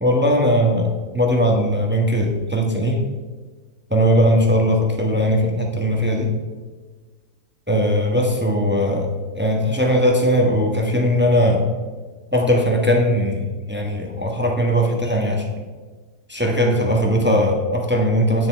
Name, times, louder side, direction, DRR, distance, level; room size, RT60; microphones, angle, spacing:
voice 1, 0.0-3.0 3.9-6.3 7.7-11.6 12.3-15.5 16.3-18.5, equal, 10° right, 1 dB, 0.9 m, -19 dB
9.4 x 6.7 x 4.5 m, 1.4 s
omnidirectional pair, 1.7 m